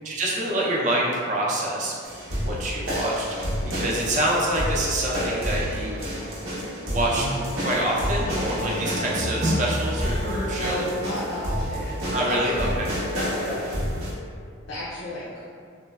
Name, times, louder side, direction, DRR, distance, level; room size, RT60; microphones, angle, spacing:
voice 1, 0.0-2.1 2.4-3.3 3.7-6.0 6.8-7.3 7.6-10.9 12.1-12.9, right 1 dB, 35° right, -4 dB, 0.4 m, -26 dB
sound 1, 2.0-14.1, equal, 90° right, 0.7 m, -29 dB
sound 2, 7.3-12.9, right 1 dB, 10° right, 0.8 m, -40 dB
voice 2, 10.2-12.7 13.1-13.7 14.7-15.5, left 1 dB, 85° left, -8 dB, 0.4 m, -33 dB
3.0 x 2.1 x 2.2 m, 2.2 s
head